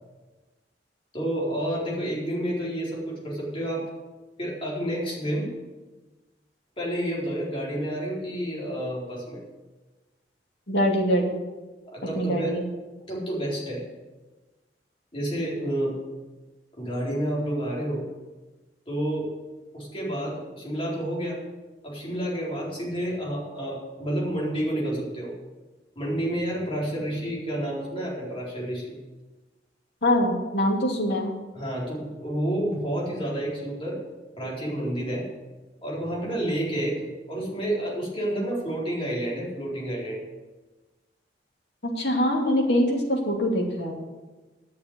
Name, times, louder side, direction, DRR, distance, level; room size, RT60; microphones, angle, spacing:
voice 1, 1.1-3.9 4.4-5.5 6.8-9.4 11.9-12.6 13.1-13.8 15.1-16.0 16.7-18.0 18.9-19.3 19.7-21.4 21.8-25.3 26.0-28.9 31.5-34.0 34.3-35.3 35.8-40.2, right 1 dB, 30° left, -5 dB, 4.2 m, -29 dB
voice 2, 10.7-11.4 12.2-12.7 30.0-31.3 42.0-43.9, equal, 65° left, 0 dB, 2.6 m, -23 dB
10.5 x 6.8 x 8.0 m, 1.2 s
head